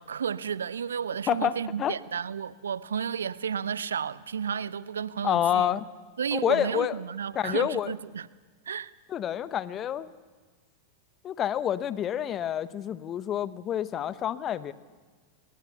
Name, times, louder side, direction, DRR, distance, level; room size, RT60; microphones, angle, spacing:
voice 1, 0.0-5.7 6.2-8.3 8.7-8.9, right 7 dB, 70° right, 0.7 m, -32 dB
voice 2, 5.2-5.9 6.3-7.0 7.3-7.9 9.1-10.1 11.2-14.7, left 10 dB, 30° left, 1.1 m, -28 dB
29.5 x 22.5 x 7.0 m
figure-of-eight pair, 90°, 0 cm